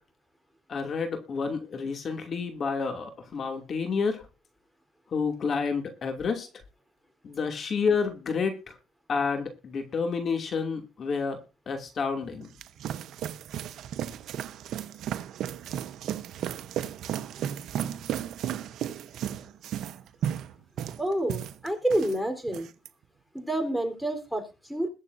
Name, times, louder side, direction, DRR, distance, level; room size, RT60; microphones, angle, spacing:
voice 1, 0.7-4.3 5.1-6.5 7.2-8.8 9.1-11.4 11.7-12.5, left 5 dB, 55° left, 5 dB, 2.6 m, -29 dB
sound 1, 12.2-22.2 22.5-22.9, right 10 dB, 80° right, 0.9 m, -34 dB
voice 2, 21.0-22.7 23.3-24.9, right 1 dB, ahead, 7 dB, 4.1 m, -28 dB
21.5 x 7.4 x 2.7 m, 0.32 s
cardioid pair, 90°, 0 cm